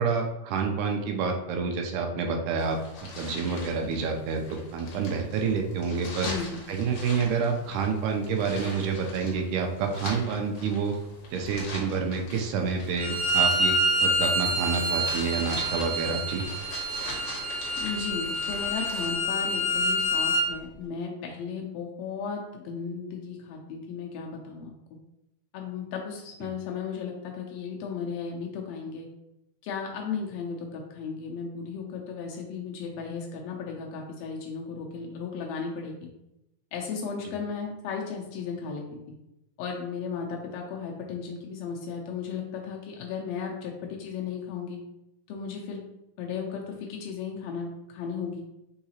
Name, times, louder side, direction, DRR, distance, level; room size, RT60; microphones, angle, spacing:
voice 1, 0.0-2.8 3.2-6.3 6.7-11.0 11.3-13.8 14.0-16.4 37.3-37.4, right 5 dB, 80° right, 3 dB, 2.1 m, -28 dB
sound 1, 2.6-19.1, left 2 dB, 60° left, 1.4 m, -42 dB
voice 2, 6.3-6.6 17.8-25.0 25.5-29.1 29.6-36.1 36.7-38.8 39.6-44.8 45.3-45.8 46.2-48.4, left 5 dB, 90° left, 0 dB, 1.5 m, -35 dB
Bowed string instrument, 13.0-20.4, right 1 dB, 50° right, 1.3 m, -27 dB
4.7 x 3.9 x 2.8 m, 0.88 s
omnidirectional pair, 3.8 m